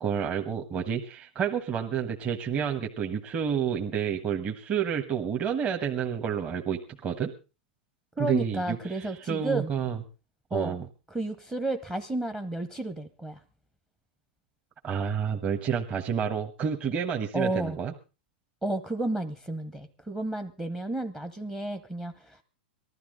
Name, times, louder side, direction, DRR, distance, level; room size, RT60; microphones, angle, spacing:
voice 1, 0.0-7.3 8.2-10.0 10.5-10.8 14.8-17.9, right 7 dB, 25° right, 2 dB, 1.3 m, -29 dB
voice 2, 8.2-9.7 10.5-10.8 11.1-13.4 17.3-17.8 18.6-22.4, right 2 dB, 5° right, 13 dB, 0.8 m, -32 dB
19.5 x 13.0 x 3.9 m, 0.32 s
hypercardioid pair, 140°, 6 cm